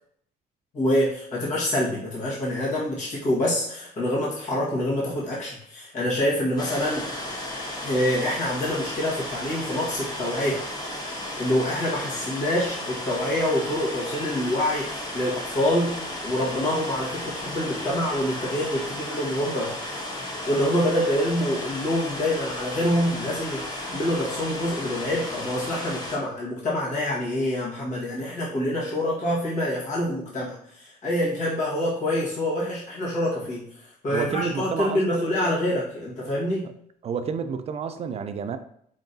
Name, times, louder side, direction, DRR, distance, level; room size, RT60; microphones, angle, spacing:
voice 1, 0.7-7.0 7.8-10.6 11.4-20.1 20.5-36.7, left 1 dB, 45° left, 1.5 m, -26 dB
sound 1, 6.6-26.2, left 1 dB, 25° left, 1.1 m, -34 dB
voice 2, 34.1-35.3 37.0-38.6, right 6 dB, 40° right, 0.4 m, -30 dB
3.9 x 3.7 x 2.7 m
cardioid pair, 110°, 17 cm